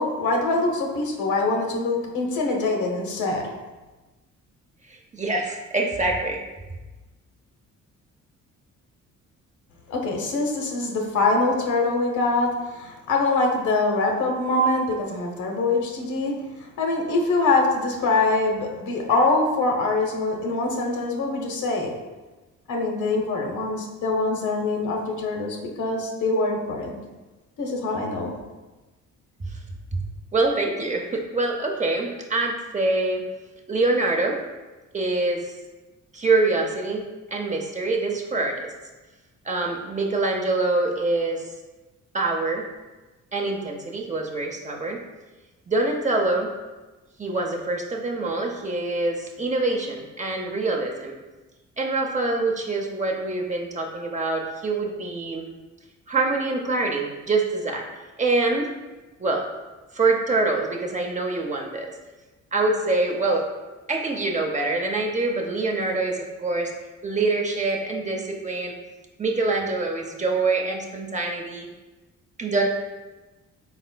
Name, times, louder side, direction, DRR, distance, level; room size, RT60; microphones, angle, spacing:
voice 1, 0.0-3.5 9.9-21.9 22.7-27.0 27.6-28.3, left 2 dB, 80° left, 0 dB, 0.9 m, -24 dB
voice 2, 4.9-6.4 29.4-29.5 30.3-33.3 33.7-34.4 34.9-35.5 36.1-37.0 37.3-38.6 39.4-41.4 42.1-42.6 43.3-45.0 45.7-46.5 47.2-51.2 51.8-55.4 56.1-57.9 58.2-58.7 59.2-59.5 59.9-61.9 62.5-63.5 63.9-66.7 67.0-68.7 69.2-71.7 72.4-72.7, right 3 dB, 25° right, 0 dB, 0.6 m, -25 dB
4.2 x 4.1 x 2.2 m, 1.2 s
cardioid pair, 90°, 30 cm